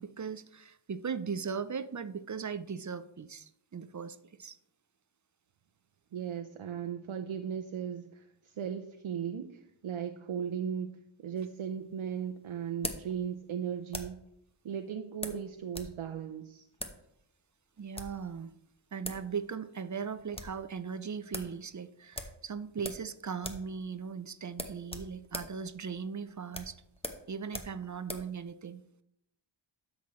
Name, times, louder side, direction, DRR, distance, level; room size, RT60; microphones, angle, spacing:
voice 1, 0.0-4.6 17.8-18.5 18.9-26.8 27.3-28.8, right 6 dB, 40° right, 12 dB, 0.5 m, -38 dB
voice 2, 6.1-14.2 14.6-16.7, right 8 dB, 80° right, 5 dB, 0.6 m, -37 dB
sound 1, 11.4-14.3 15.2-16.0 16.2-16.3 16.7-17.0 17.7-18.2 18.8-18.9 19.0-19.3 19.6-19.7 20.0-20.6 20.9-21.0 21.3-21.5 22.1-23.1 23.4-23.7 24.0-24.1 24.5-28.3, left 1 dB, 10° left, 1.0 m, -42 dB
12.0 x 6.2 x 3.1 m, 0.77 s
wide cardioid pair, 75°, 47 cm